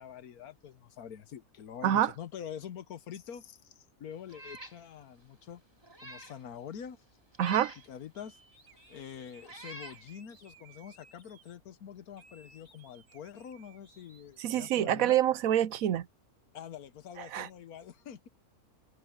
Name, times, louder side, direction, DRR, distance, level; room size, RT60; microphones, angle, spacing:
voice 1, 0.0-5.6 6.0-7.0 7.9-8.4 8.9-15.2 16.5-18.3, left 8 dB, 80° left, 1.5 m, -45 dB
voice 2, 1.8-2.1 7.4-7.7 14.4-16.1 17.2-17.5, right 11 dB, 70° right, 1.1 m, -27 dB
Meow, 4.3-4.8 5.2-5.3 5.8-6.4 7.3-7.9 8.7-8.8 9.4-10.0, right 3 dB, 15° right, 3.1 m, -45 dB
sound 1, 7.7-7.9 8.1-11.6 12.2-14.9, right 4 dB, 45° right, 6.4 m, -60 dB
omnidirectional pair, 1.6 m